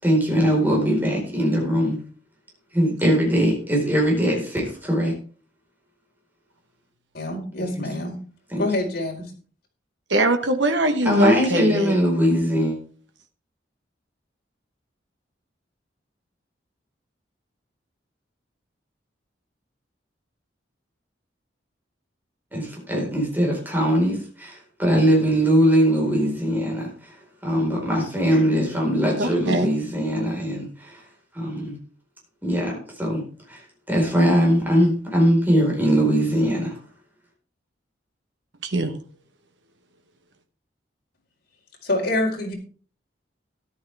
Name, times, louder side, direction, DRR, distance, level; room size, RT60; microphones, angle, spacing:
voice 1, 0.0-2.0 2.7-5.1 7.7-7.9 8.5-8.6 11.0-12.8 22.5-27.1 27.4-31.0 31.3-31.8 32.4-33.6 33.9-36.8, equal, 10° right, 4.4 m, -21 dB
voice 2, 7.1-8.1 8.6-9.3 41.8-42.5, left 1 dB, 60° left, 4.6 m, -26 dB
voice 3, 10.1-12.0 29.2-29.7 38.7-39.0, right 2 dB, 80° right, 1.2 m, -22 dB
14.0 x 11.0 x 3.5 m
head